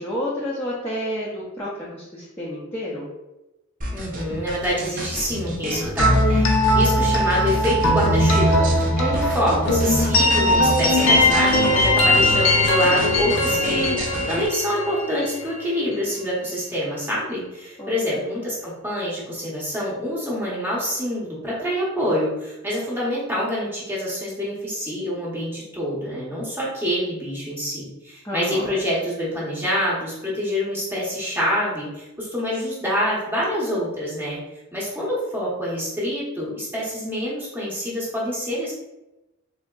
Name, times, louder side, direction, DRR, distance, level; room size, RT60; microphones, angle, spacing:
voice 1, 0.0-3.1 17.8-18.2 28.2-28.7, equal, 10° left, -8 dB, 0.5 m, -30 dB
sound 1, 3.8-14.5, right 1 dB, 40° right, 0.5 m, -31 dB
voice 2, 3.9-34.4 34.7-38.8, equal, 10° right, -7 dB, 0.9 m, -26 dB
sound 2, 6.0-15.7, left 1 dB, 70° left, 0.6 m, -19 dB
3.5 x 2.7 x 2.3 m, 0.98 s
head